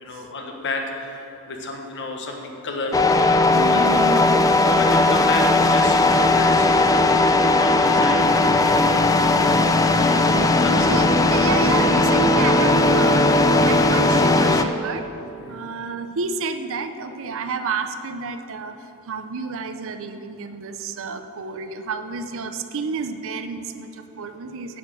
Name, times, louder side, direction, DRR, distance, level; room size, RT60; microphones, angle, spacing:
voice 1, 0.0-3.1 3.6-3.9 4.7-9.5 10.3-10.9 15.4-15.6, left 3 dB, 55° left, 2 dB, 1.3 m, -32 dB
sound 1, 2.9-14.6, left 2 dB, 15° left, 0.4 m, -17 dB
voice 2, 3.4-4.5 10.3-13.3 13.6-15.1 15.5-24.8, right 4 dB, 65° right, 9 dB, 0.6 m, -30 dB
9.2 x 7.9 x 6.3 m, 2.9 s
head